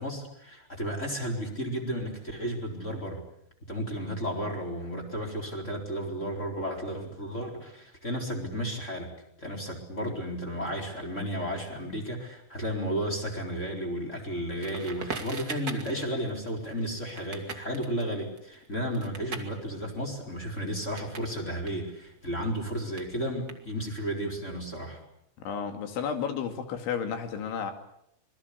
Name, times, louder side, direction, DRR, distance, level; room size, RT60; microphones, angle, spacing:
voice 1, 0.0-3.2 3.7-9.1 9.4-25.0, equal, 15° left, 1 dB, 4.0 m, -33 dB
Crackle, 14.6-21.3 21.6-24.0, right 4 dB, 55° right, 1.0 m, -42 dB
voice 2, 25.5-27.7, left 7 dB, 70° left, 6 dB, 4.7 m, -32 dB
26.5 x 21.0 x 8.4 m, 0.75 s
omnidirectional pair, 5.9 m